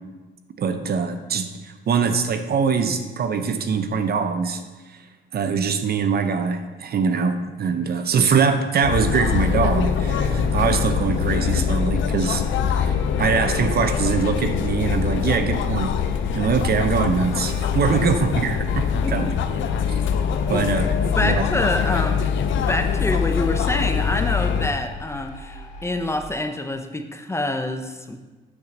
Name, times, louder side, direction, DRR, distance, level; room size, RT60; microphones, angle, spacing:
voice 1, 0.6-4.6 4.9-5.0 5.3-16.0 16.3-19.3 20.5-20.9 21.2-21.4, right 5 dB, 50° right, 8 dB, 0.7 m, -23 dB
sound 1, 8.8-24.7, left 7 dB, 75° left, 0.6 m, -23 dB
sound 2, 9.9-13.7 14.9-15.0, equal, 35° right, 1.8 m, -39 dB
sound 3, 12.4-26.2, left 3 dB, 40° left, 1.8 m, -40 dB
voice 2, 21.0-22.3 22.7-28.2, left 1 dB, 15° left, 6 dB, 0.7 m, -26 dB
8.8 x 3.9 x 6.0 m, 1.2 s
cardioid pair, 90°, 20 cm